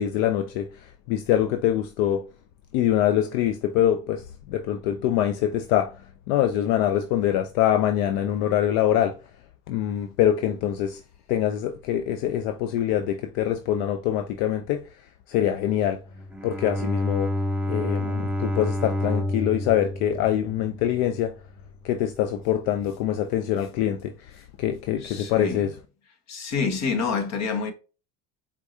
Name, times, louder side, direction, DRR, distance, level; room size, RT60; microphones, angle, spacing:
voice 1, 0.0-2.3 2.7-9.2 9.7-11.0 11.3-16.0 16.4-17.4 17.7-21.4 21.8-25.8, left 11 dB, 75° left, 0.6 m, -24 dB
Bowed string instrument, 16.1-21.3, left 1 dB, 5° right, 0.6 m, -29 dB
voice 2, 25.0-25.6 26.3-27.7, left 5 dB, 50° left, 1.3 m, -27 dB
4.6 x 3.7 x 2.7 m
supercardioid pair, 100°, 36 cm